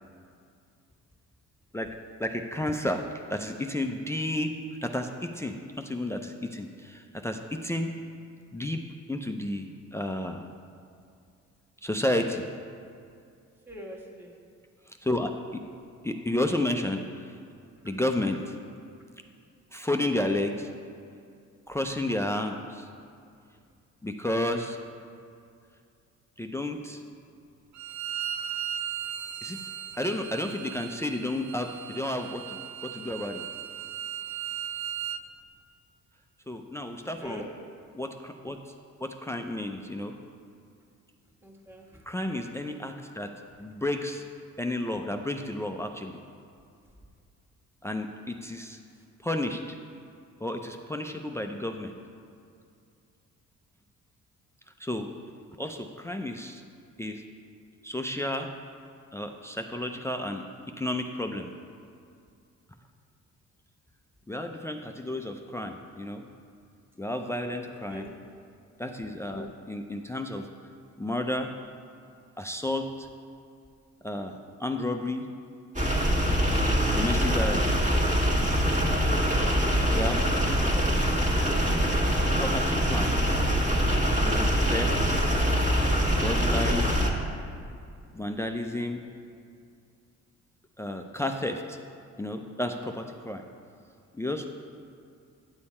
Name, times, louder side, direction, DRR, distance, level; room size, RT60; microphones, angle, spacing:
voice 1, 1.7-4.5 4.8-7.9 8.5-8.8 9.1-10.4 11.8-12.4 15.0-15.7 16.0-17.0 17.8-18.5 19.7-20.7 21.7-22.9 24.0-24.8 26.4-27.0 29.4-29.6 30.0-32.6 32.9-33.4 36.5-37.5 37.9-38.6 39.0-40.1 42.1-43.3 43.6-44.2 44.6-46.2 47.8-48.8 49.2-49.8 50.4-51.9 54.8-55.1 55.6-56.6 57.0-57.2 57.8-58.5 59.1-60.5 60.8-61.5 64.3-66.3 67.0-68.1 68.8-70.5 71.0-71.5 72.4-73.1 74.0-75.3 76.4-77.9 79.9-80.3 80.6-81.0 82.4-83.1 84.2-85.2 86.2-86.9 88.1-89.0 90.8-91.8 92.2-93.4 94.1-94.5, left 1 dB, 10° left, 4 dB, 0.4 m, -32 dB
voice 2, 13.7-14.3 37.0-37.4 41.4-41.9 67.9-68.1, equal, 5° right, -2 dB, 1.5 m, -43 dB
Bowed string instrument, 27.7-35.2, right 10 dB, 70° right, 0.5 m, -37 dB
sound 1, 75.7-87.1, equal, 25° right, 1.5 m, -24 dB
9.6 x 6.9 x 4.2 m, 2.4 s
cardioid pair, 90°, 30 cm